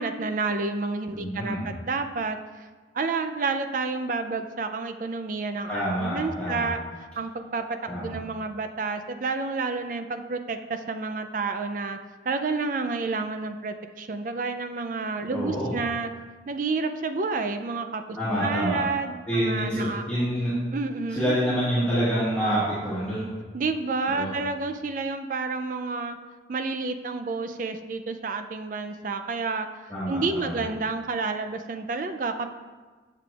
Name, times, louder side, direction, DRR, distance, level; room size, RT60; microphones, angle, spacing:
voice 1, 0.0-2.4 2.9-6.8 7.2-12.0 12.3-16.1 16.5-20.0 20.7-21.4 23.5-26.2 26.5-29.7 30.1-32.5, right 4 dB, 50° right, 8 dB, 0.4 m, -30 dB
voice 2, 1.1-1.7 5.7-6.7 7.9-8.1 15.3-15.7 18.1-18.8 19.3-20.5 21.1-23.3 24.1-24.3 29.9-30.6, equal, 10° left, -12 dB, 1.5 m, -27 dB
7.4 x 6.7 x 2.4 m, 1.4 s
head